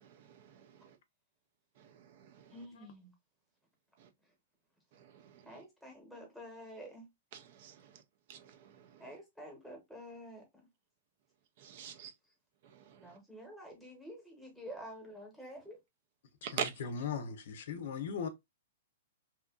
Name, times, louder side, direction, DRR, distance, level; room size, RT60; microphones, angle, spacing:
voice 1, 0.0-0.5 2.2-2.4 5.1-5.2 7.3-7.8 8.3-8.6 11.6-12.1 12.9-13.0 16.4-16.7, right 7 dB, 50° right, 0.4 m, -41 dB
voice 2, 2.5-3.1 5.4-7.1 9.0-10.4 13.0-15.8, equal, ahead, 1.0 m, -49 dB
voice 3, 16.5-18.3, left 6 dB, 65° left, 0.5 m, -38 dB
2.7 x 2.4 x 2.3 m
hypercardioid pair, 155°, 0 cm